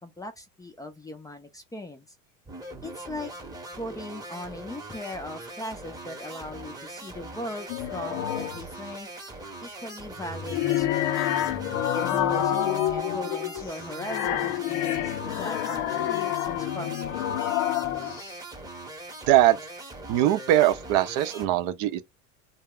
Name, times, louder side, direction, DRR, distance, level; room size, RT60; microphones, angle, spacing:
voice 1, 0.0-2.1 2.8-3.3 3.7-9.1 9.6-11.3 11.9-17.2, left 1 dB, 10° left, 0.4 m, -39 dB
sound 1, 2.5-21.5, right 2 dB, 10° right, 0.8 m, -41 dB
sound 2, 7.7-8.7 10.2-18.3, left 11 dB, 80° left, 0.6 m, -28 dB
voice 2, 19.3-19.6 20.1-22.0, right 13 dB, 60° right, 0.5 m, -21 dB
2.3 x 2.0 x 3.6 m
supercardioid pair, 100°, 37 cm